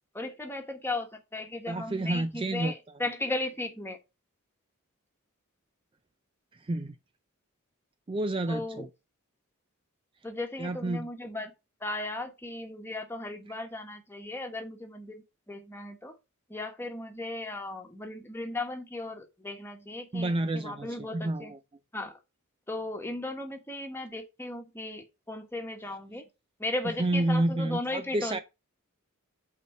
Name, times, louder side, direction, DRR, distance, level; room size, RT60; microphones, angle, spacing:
voice 1, 0.1-4.0 8.5-8.9 10.2-11.5 11.8-16.2 16.5-21.5 21.9-22.2 22.7-26.3 26.6-28.4, left 2 dB, 10° left, 1.3 m, -36 dB
voice 2, 1.7-2.7 6.6-7.0 8.1-8.9 10.6-11.1 13.5-13.6 20.1-21.6 27.0-28.4, right 1 dB, 25° right, 0.4 m, -29 dB
8.4 x 4.2 x 4.4 m
head